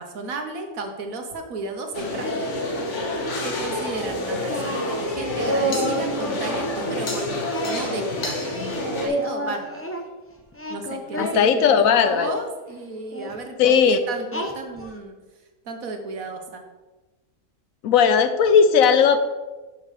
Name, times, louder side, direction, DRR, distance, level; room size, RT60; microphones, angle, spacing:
voice 1, 0.0-2.7 3.4-7.3 7.6-8.4 9.0-9.9 10.7-15.1 15.6-16.6, right 3 dB, 85° right, 4 dB, 1.5 m, -34 dB
sound 1, 1.9-9.1, left 1 dB, 60° left, 1.5 m, -28 dB
Singing, 4.5-6.1 7.5-10.0 10.5-12.3 13.1-13.4 14.3-15.0, right 1 dB, 15° left, 0.5 m, -30 dB
voice 2, 11.2-12.4 13.6-14.0 17.8-19.2, left 7 dB, 85° left, 10 dB, 1.1 m, -17 dB
11.5 x 5.9 x 3.3 m, 1.2 s
omnidirectional pair, 1.4 m